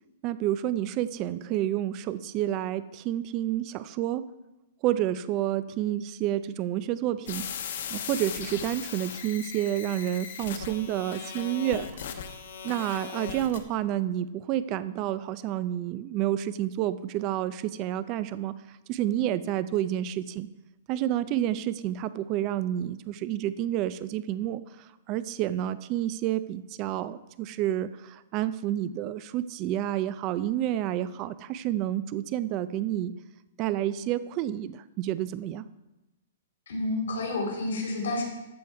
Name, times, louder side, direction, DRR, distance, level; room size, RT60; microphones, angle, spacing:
voice 1, 0.2-4.3 4.8-7.5 7.9-11.9 12.6-18.5 18.9-20.5 20.9-33.1 33.6-35.6, right 12 dB, 25° right, 15 dB, 0.3 m, -29 dB
sound 1, 7.3-13.6, left 8 dB, 60° left, 0.9 m, -38 dB
voice 2, 36.7-38.2, left 2 dB, 90° left, 1 dB, 3.3 m, -29 dB
14.0 x 4.9 x 4.5 m, 0.99 s
hypercardioid pair, 165°, 0 cm